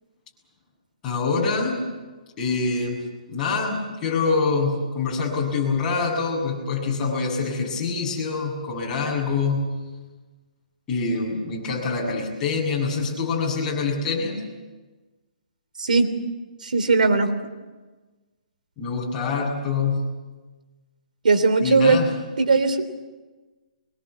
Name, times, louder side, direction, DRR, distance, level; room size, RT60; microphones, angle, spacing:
voice 1, 1.0-1.8 2.4-3.0 3.3-9.7 10.9-14.4 18.8-20.0 21.6-22.1, left 4 dB, 15° left, -3 dB, 7.3 m, -25 dB
voice 2, 16.6-17.3 21.2-22.0 22.4-22.8, right 4 dB, 90° right, 9 dB, 3.2 m, -18 dB
24.0 x 22.0 x 8.4 m, 1.3 s
hypercardioid pair, 165°, 4 cm